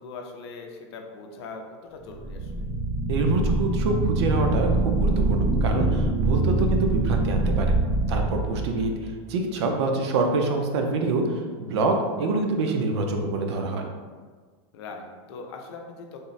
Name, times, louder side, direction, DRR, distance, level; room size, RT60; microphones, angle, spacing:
voice 1, 0.0-2.7 8.7-9.1 14.7-16.2, left 4 dB, 65° left, 3 dB, 0.6 m, -41 dB
sound 1, 2.1-9.1, right 2 dB, 20° right, 0.4 m, -24 dB
voice 2, 3.1-7.7 8.1-8.9 9.3-11.2 11.6-13.9, right 3 dB, 75° right, 3 dB, 0.6 m, -26 dB
3.5 x 2.0 x 4.0 m, 1.5 s
supercardioid pair, 155°, 14 cm